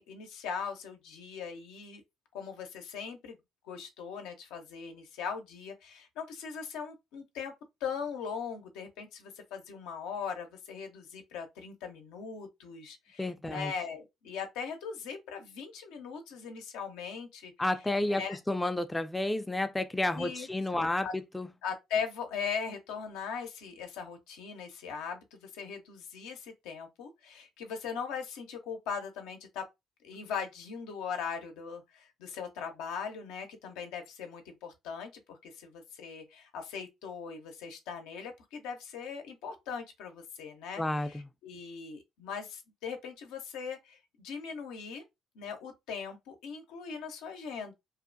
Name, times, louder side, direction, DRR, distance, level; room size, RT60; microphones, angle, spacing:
voice 1, 0.0-2.0 2.3-3.4 3.6-7.5 7.8-17.5 18.1-18.4 20.1-20.5 20.7-21.1 21.6-29.6 30.0-45.0 45.4-47.7, left 6 dB, 80° left, 0.6 m, -40 dB
voice 2, 13.2-13.7 17.6-18.2 18.5-21.5 40.8-41.3, left 1 dB, 15° left, 0.4 m, -31 dB
2.6 x 2.1 x 2.5 m
supercardioid pair, 65°, 0 cm